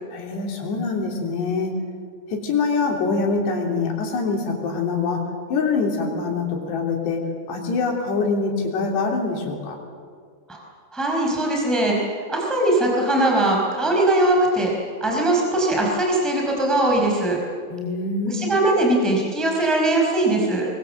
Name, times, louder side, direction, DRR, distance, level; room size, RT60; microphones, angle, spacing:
voice 1, 0.1-1.7 2.3-9.8 17.7-18.5, left 4 dB, 65° left, 1 dB, 5.3 m, -24 dB
voice 2, 10.9-11.9 12.3-14.7 15.0-17.4 18.2-20.7, right 1 dB, ahead, -1 dB, 4.6 m, -20 dB
24.0 x 23.0 x 8.0 m, 2.1 s
omnidirectional pair, 5.3 m